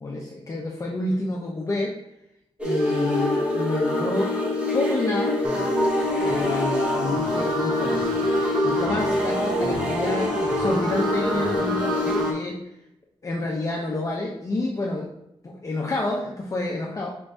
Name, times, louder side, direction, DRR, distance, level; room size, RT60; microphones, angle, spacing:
voice 1, 0.0-1.9 2.6-4.3 4.7-5.4 6.2-8.2 8.6-12.6 13.2-15.1 15.4-17.1, left 2 dB, 30° left, -2 dB, 0.5 m, -28 dB
sound 1, 2.6-12.3, left 1 dB, 10° right, 0.8 m, -25 dB
sound 2, 5.4-12.3, right 1 dB, 40° right, 0.7 m, -31 dB
5.2 x 2.6 x 3.3 m, 0.82 s
wide cardioid pair, 150°, 10 cm